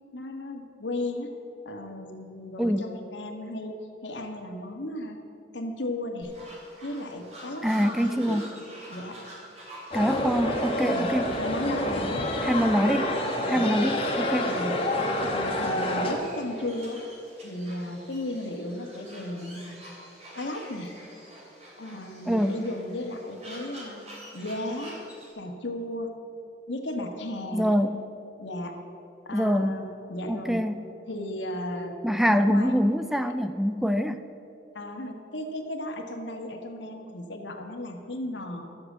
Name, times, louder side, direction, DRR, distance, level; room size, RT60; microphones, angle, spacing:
voice 1, 0.1-1.3 1.6-3.7 4.0-5.2 5.5-6.3 6.8-8.4 8.9-9.2 10.9-12.3 13.4-13.8 14.4-14.8 15.2-17.0 17.4-19.8 20.3-20.9 21.8-24.0 24.3-25.0 25.3-26.1 26.7-27.7 28.4-28.8 29.2-30.6 31.0-31.9 32.4-32.8 34.7-38.6, left 1 dB, 80° left, 3 dB, 1.4 m, -35 dB
sound 1, 6.2-25.3, equal, 35° right, 3.0 m, -47 dB
voice 2, 7.6-8.4 9.9-11.3 12.4-13.2 13.5-14.5 22.3-22.6 27.5-28.0 29.3-29.8 30.3-30.8 32.0-34.2, equal, ahead, 9 dB, 0.3 m, -24 dB
sound 2, 9.9-16.1, left 1 dB, 30° left, 1.5 m, -28 dB
12.5 x 7.9 x 7.3 m, 2.9 s
head